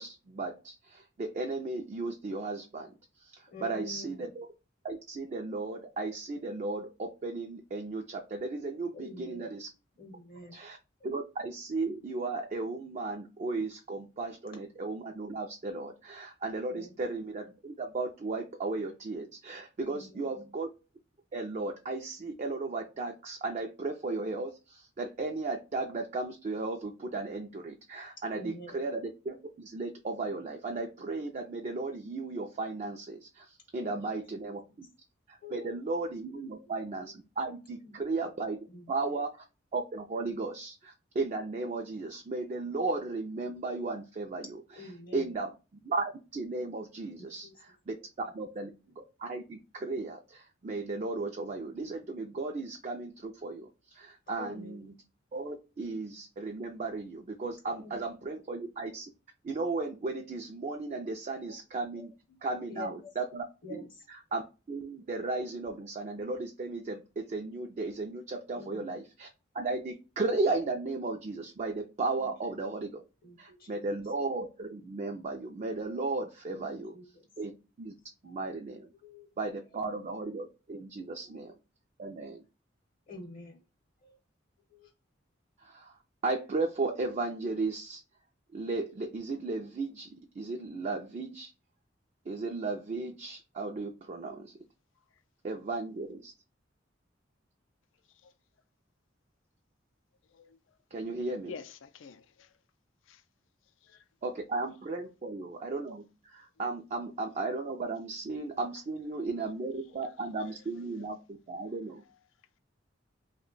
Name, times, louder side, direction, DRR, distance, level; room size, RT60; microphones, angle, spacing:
voice 1, 0.0-4.5 4.8-9.7 10.5-10.8 11.0-20.7 21.3-34.9 35.3-38.6 38.9-39.4 39.7-45.5 45.8-47.9 48.3-48.7 49.2-54.9 55.3-59.1 59.4-62.1 62.4-63.4 63.7-64.4 64.7-69.3 69.5-73.0 73.4-76.9 77.4-77.5 77.8-77.9 78.2-78.9 79.4-81.5 82.0-82.4 85.6-86.0 86.2-88.0 88.5-91.5 92.3-94.5 95.4-96.3 100.9-101.6 104.2-112.0, right 3 dB, 40° right, 0.4 m, -35 dB
voice 2, 3.5-4.3 8.9-9.6 10.0-10.6 11.0-11.1 16.7-17.0 19.8-20.5 28.3-28.9 33.8-34.8 35.4-35.8 36.3-36.5 37.8-38.0 38.7-39.2 44.8-45.4 47.1-47.6 47.9-48.0 54.4-54.9 57.8-58.0 58.6-58.7 61.5-61.6 61.9-62.1 62.5-63.1 63.6-64.0 68.5-68.9 72.2-72.3 73.2-74.0 76.5-77.3 78.2-78.4 79.0-79.3 79.8-79.9 81.3-81.4 83.1-83.6 84.0-84.2 84.7-84.9, left 2 dB, 50° left, 0.7 m, -48 dB
voice 3, 101.5-102.5 103.1-103.2 103.8-104.0, left 5 dB, 80° left, 0.4 m, -47 dB
2.9 x 2.2 x 3.7 m
head